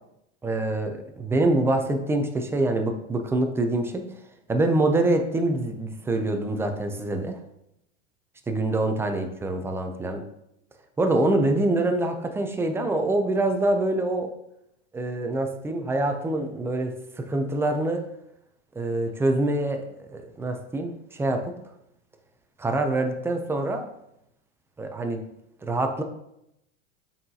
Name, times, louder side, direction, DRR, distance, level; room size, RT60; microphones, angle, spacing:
voice 1, 0.4-4.0 4.5-7.4 8.5-10.2 11.0-14.3 14.9-18.1 18.7-21.5 22.6-23.9 24.8-25.2 25.6-26.0, right 2 dB, 5° right, 5 dB, 0.3 m, -25 dB
7.6 x 5.7 x 2.7 m, 0.80 s
supercardioid pair, 130°, 39 cm